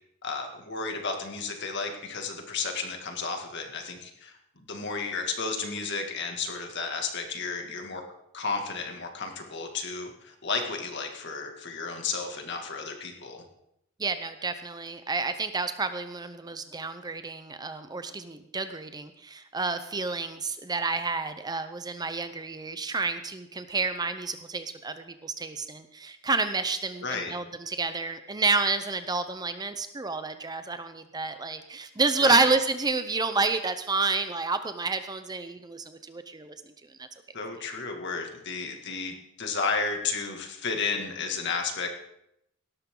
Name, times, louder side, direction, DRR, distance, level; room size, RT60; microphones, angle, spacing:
voice 1, 0.2-8.0 8.3-13.4 27.0-27.3 32.2-32.4 37.3-41.9, left 4 dB, 55° left, 3 dB, 2.2 m, -33 dB
voice 2, 14.0-37.1, right 3 dB, 20° right, 10 dB, 0.7 m, -29 dB
17.5 x 13.0 x 3.9 m, 0.79 s
head